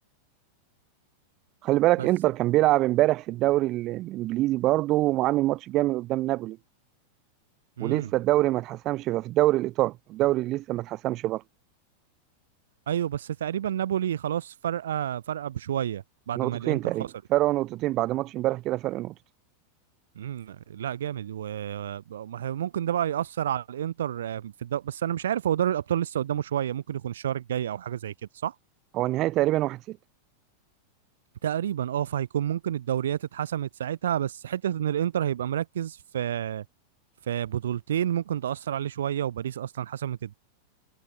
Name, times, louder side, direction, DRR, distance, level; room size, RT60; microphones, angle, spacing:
voice 1, 1.6-6.6 7.8-11.4 16.4-19.1 28.9-30.0, right 16 dB, 35° right, 2.4 m, -25 dB
voice 2, 7.8-8.1 12.9-17.1 20.2-28.1 28.4-28.5 31.4-36.6 37.3-40.3, right 10 dB, 60° right, 3.0 m, -29 dB
figure-of-eight pair, 90°, 0 cm